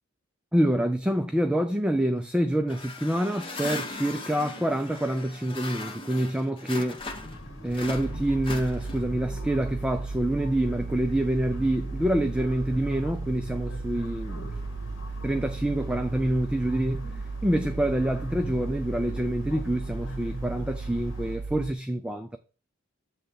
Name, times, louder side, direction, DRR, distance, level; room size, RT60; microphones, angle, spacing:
voice 1, 0.5-7.0 7.6-14.5 15.2-17.1 17.4-22.4, right 1 dB, 5° right, 0.4 m, -27 dB
sound 1, 2.7-7.4 7.7-9.2, left 3 dB, 25° left, 0.9 m, -38 dB
sound 2, 7.1-21.4, equal, 65° left, 1.7 m, -40 dB
sound 3, 8.0-21.7, right 3 dB, 85° right, 0.8 m, -36 dB
7.9 x 3.3 x 5.6 m
head